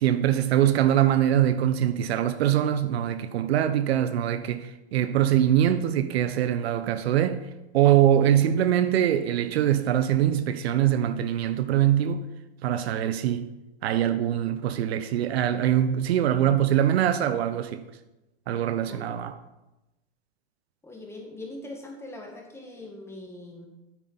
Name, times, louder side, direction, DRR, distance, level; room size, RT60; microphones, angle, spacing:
voice 1, 0.0-7.4 7.7-12.3 12.6-13.5 13.8-17.8 18.5-19.3, right 11 dB, 65° right, 0.8 m, -23 dB
voice 2, 18.9-19.2 20.8-23.7, left 2 dB, 10° left, 1.8 m, -41 dB
9.2 x 9.1 x 4.0 m
hypercardioid pair, 135°, 34 cm